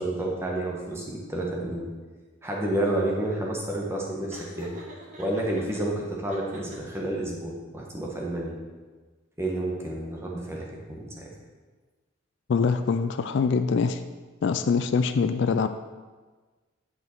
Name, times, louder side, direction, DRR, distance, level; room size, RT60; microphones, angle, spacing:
voice 1, 0.0-1.8 2.4-4.7 5.2-8.6 9.4-11.3, right 1 dB, 10° right, -2 dB, 1.3 m, -30 dB
Laughter, 4.3-5.8 6.3-7.2, left 1 dB, 35° right, 1.5 m, -43 dB
voice 2, 12.5-14.0 14.4-15.7, left 5 dB, 60° left, 9 dB, 0.3 m, -24 dB
8.4 x 5.5 x 4.5 m, 1.4 s
head